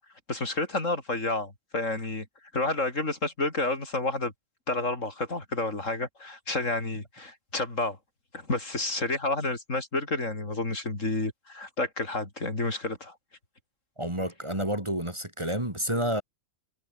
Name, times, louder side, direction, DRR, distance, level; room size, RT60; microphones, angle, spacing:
voice 1, 0.3-2.2 2.5-4.3 4.7-8.0 8.3-13.1, left 2 dB, 70° left, 4.9 m, -30 dB
voice 2, 14.0-16.2, right 1 dB, 20° right, 3.4 m, -29 dB
omnidirectional pair, 1.4 m